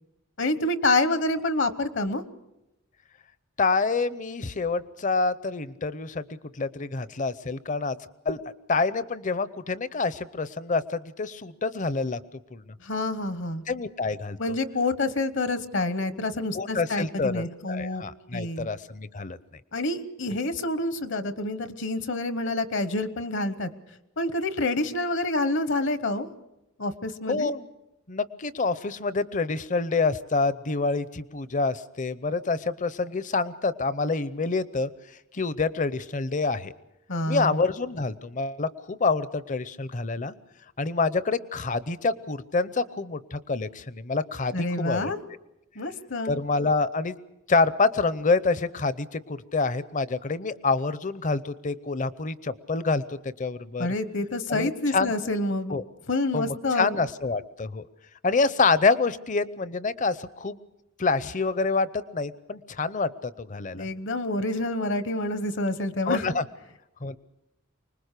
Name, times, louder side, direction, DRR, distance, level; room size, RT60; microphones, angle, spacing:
voice 1, 0.4-2.2 12.8-13.6 14.4-18.0 18.3-18.7 19.7-23.7 24.2-26.3 26.8-27.5 37.1-37.6 44.5-45.2 45.8-46.4 53.8-55.8 56.1-57.0 63.7-66.2, left 2 dB, 60° left, 12 dB, 1.1 m, -27 dB
voice 2, 3.6-6.2 6.5-8.0 8.2-8.4 8.7-12.2 12.5-12.7 13.7-14.4 16.5-19.4 27.3-27.7 28.1-34.9 35.3-36.7 37.3-40.3 40.8-45.1 46.2-47.2 47.5-53.9 54.5-55.1 55.7-55.8 56.3-57.9 58.2-60.6 61.0-63.9 66.1-66.4 67.0-67.2, left 4 dB, 35° left, 15 dB, 0.7 m, -27 dB
25.0 x 20.5 x 6.7 m, 0.91 s
head